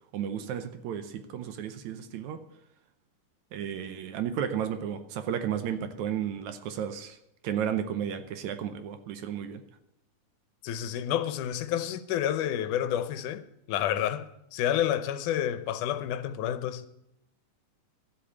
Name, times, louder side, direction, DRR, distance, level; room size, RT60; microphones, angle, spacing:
voice 1, 0.1-2.4 3.5-7.2 7.4-9.6, right 9 dB, 75° right, 2.1 m, -33 dB
voice 2, 10.6-16.9, left 10 dB, 80° left, 2.2 m, -29 dB
13.0 x 7.8 x 8.4 m
omnidirectional pair, 3.7 m